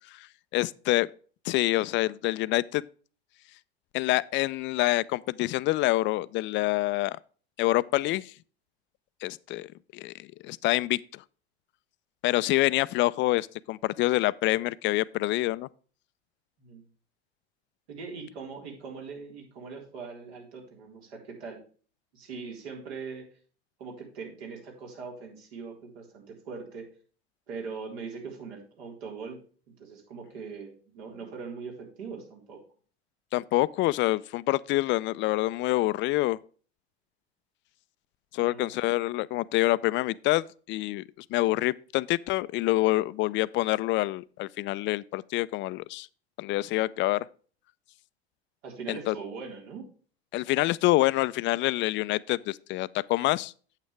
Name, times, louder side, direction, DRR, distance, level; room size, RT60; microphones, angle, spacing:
voice 1, 0.5-1.1 1.4-2.8 3.9-7.2 7.6-8.3 9.2-11.2 12.2-15.7 33.3-36.4 38.3-41.0 41.3-46.1 46.4-47.3 48.9-49.1 50.3-53.5, left 18 dB, 35° left, 0.4 m, -26 dB
voice 2, 17.9-21.6 22.1-23.3 23.8-26.9 27.5-29.4 29.8-32.6 38.4-38.7 48.6-49.9, right 5 dB, 75° right, 3.9 m, -41 dB
8.9 x 8.3 x 3.2 m
hypercardioid pair, 90°, 32 cm